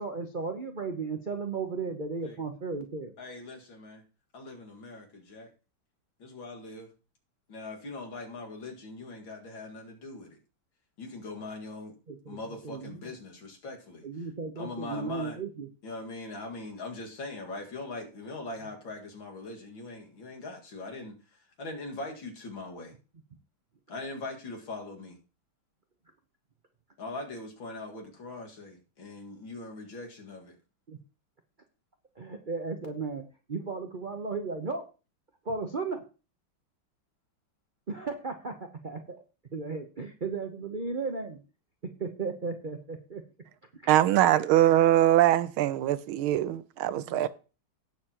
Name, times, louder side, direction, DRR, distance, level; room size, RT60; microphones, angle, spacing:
voice 1, 0.0-3.1 12.1-12.4 12.6-13.1 14.0-15.7 30.9-31.0 32.2-34.8 35.4-36.0 37.9-39.2 39.5-41.4 42.0-43.2 43.7-43.8 46.9-47.2, right 4 dB, 45° right, 0.6 m, -35 dB
voice 2, 3.2-4.0 4.3-5.5 6.2-6.9 7.5-10.4 11.0-11.9 12.3-14.1 14.6-15.4 15.8-23.0 23.9-25.2 27.0-30.5, left 2 dB, 70° left, 2.7 m, -41 dB
voice 3, 43.9-47.3, right 13 dB, 85° right, 1.5 m, -22 dB
18.0 x 6.8 x 3.0 m
omnidirectional pair, 2.3 m